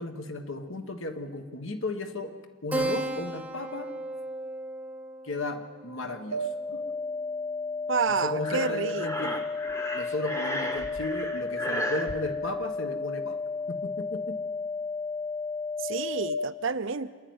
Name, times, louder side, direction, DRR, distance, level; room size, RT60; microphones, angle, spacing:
voice 1, 0.0-2.3 2.6-3.9 5.2-6.9 8.1-9.4 9.9-14.4, left 2 dB, 65° left, 7 dB, 1.4 m, -35 dB
Keyboard (musical), 2.7-7.7, right 2 dB, 5° right, 0.6 m, -36 dB
sound 1, 6.3-16.3, left 4 dB, 80° right, 1.3 m, -33 dB
voice 2, 7.9-9.3 15.8-17.1, right 5 dB, 60° right, 13 dB, 0.7 m, -29 dB
Breathing, 8.4-12.1, equal, 15° left, 1.1 m, -34 dB
26.5 x 10.5 x 9.5 m, 1.5 s
head